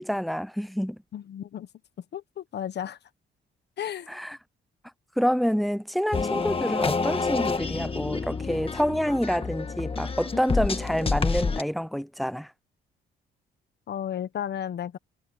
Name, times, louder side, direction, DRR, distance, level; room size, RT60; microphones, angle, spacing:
voice 1, 0.0-1.0 4.1-4.4 5.2-12.5, equal, ahead, 0.3 m, -27 dB
voice 2, 1.1-1.7 2.1-3.0 3.8-4.1 13.9-15.0, left 10 dB, 60° left, 1.3 m, -33 dB
sound 1, 6.1-11.6, left 4 dB, 30° left, 1.6 m, -28 dB
cardioid pair, 90°, 20 cm